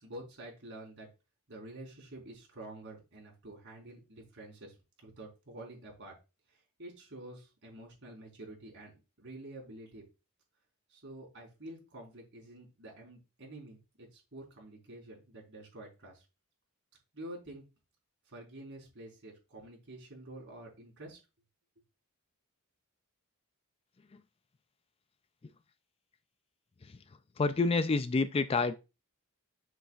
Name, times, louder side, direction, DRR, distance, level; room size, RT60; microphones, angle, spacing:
voice 1, 0.0-1.1 1.5-6.1 6.5-10.0 10.9-16.2 17.1-17.6 18.3-21.2, right 1 dB, 55° right, 4.6 m, -48 dB
voice 2, 27.4-28.8, left 3 dB, 25° left, 0.4 m, -28 dB
7.9 x 7.1 x 2.4 m
head